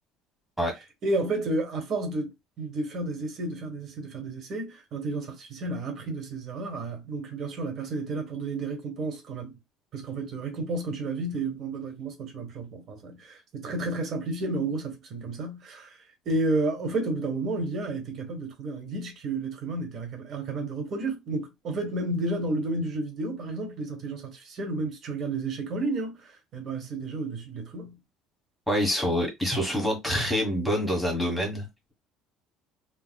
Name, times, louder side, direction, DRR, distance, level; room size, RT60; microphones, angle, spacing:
voice 1, 1.0-9.6 9.9-16.0 16.2-28.0, right 2 dB, 45° right, 1.2 m, -31 dB
voice 2, 28.7-31.9, equal, ahead, 1.3 m, -26 dB
4.0 x 2.3 x 2.3 m
cardioid pair, 140°, 0 cm